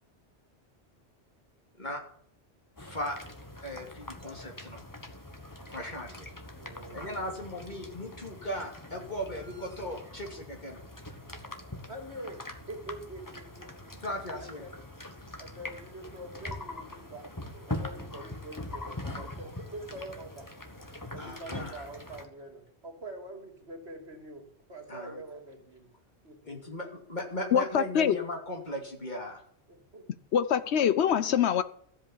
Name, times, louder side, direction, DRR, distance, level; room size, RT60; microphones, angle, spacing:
voice 1, 2.8-3.2 3.6-4.8 5.7-6.3 6.9-10.8 14.0-14.7 21.2-21.8 24.9-25.2 26.4-29.4, equal, 40° left, 2 dB, 2.8 m, -37 dB
sound 1, 2.8-22.3, left 1 dB, 15° left, 1.3 m, -43 dB
voice 2, 6.6-7.2 11.9-13.9 14.4-14.7 15.4-17.3 17.5-20.5 21.1-25.9 26.2-26.8 29.7-30.1, right 1 dB, 70° right, 3 dB, 3.1 m, -45 dB
voice 3, 27.5-28.2 30.3-31.6, left 9 dB, 75° left, 14 dB, 1.0 m, -24 dB
13.5 x 8.0 x 7.2 m, 0.63 s
omnidirectional pair, 1.1 m